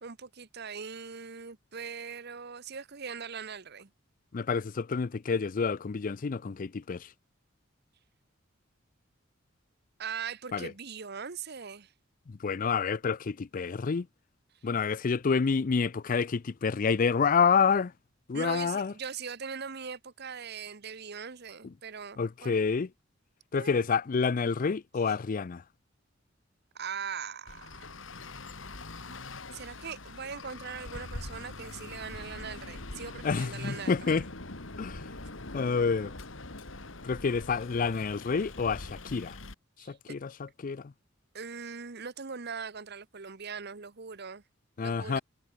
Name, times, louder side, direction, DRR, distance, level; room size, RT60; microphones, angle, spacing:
voice 1, 0.0-3.9 10.0-11.9 18.3-22.6 23.5-23.9 26.7-27.9 29.1-29.2 29.5-34.2 39.8-40.0 41.3-44.4 44.8-45.2, right 6 dB, 60° right, 1.2 m, -40 dB
voice 2, 4.3-7.1 10.5-10.7 12.3-14.1 14.6-17.9 18.3-18.9 21.6-21.7 22.2-22.9 23.5-25.6 33.2-34.3 34.8-35.1 35.5-36.1 37.0-39.4 39.9-40.9 44.8-45.2, left 5 dB, 45° left, 0.5 m, -28 dB
Traffic noise roadway noise, 27.5-39.5, left 2 dB, 85° left, 2.7 m, -43 dB
head